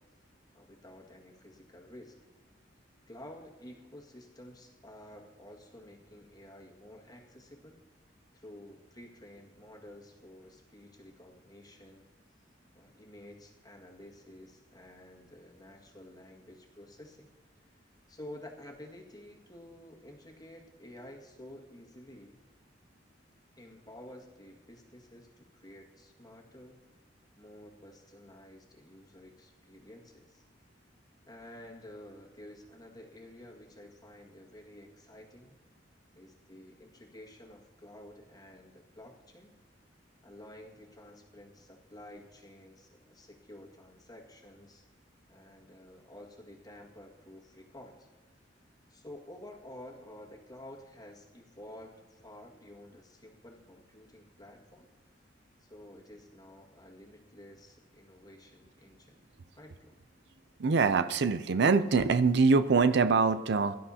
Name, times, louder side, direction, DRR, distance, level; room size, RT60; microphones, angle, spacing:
voice 1, 0.5-2.2 3.1-7.8 8.3-12.1 12.7-22.4 23.6-26.8 27.4-30.4 31.3-35.6 36.2-39.5 40.2-44.8 45.3-48.1 48.9-54.9 55.6-59.2 59.6-59.9, left 1 dB, 20° left, -1 dB, 1.9 m, -51 dB
voice 2, 60.6-63.8, right 4 dB, 65° right, 11 dB, 0.5 m, -24 dB
22.0 x 12.0 x 2.8 m, 1.3 s
head